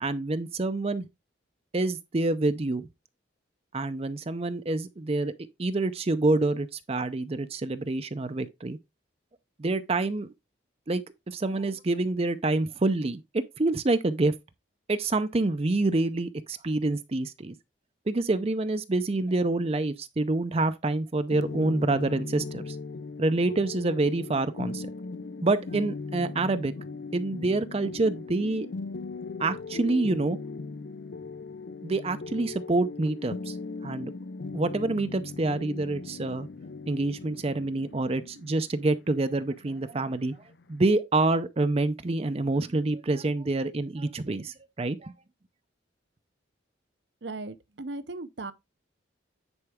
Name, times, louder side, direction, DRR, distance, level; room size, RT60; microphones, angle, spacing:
voice 1, 0.0-1.1 1.7-2.9 3.7-5.3 5.6-8.8 9.6-10.3 10.9-13.2 13.6-14.3 14.9-17.5 18.1-22.8 23.2-24.9 25.4-26.7 27.1-28.7 29.4-30.4 31.8-33.6 33.8-34.1 34.5-36.5 36.9-40.4 40.7-45.1, right 2 dB, 30° right, 0.5 m, -27 dB
sound 1, 21.3-40.9, left 3 dB, 60° left, 0.5 m, -39 dB
voice 2, 47.2-48.5, right 2 dB, 65° right, 0.8 m, -37 dB
9.8 x 4.6 x 3.6 m
head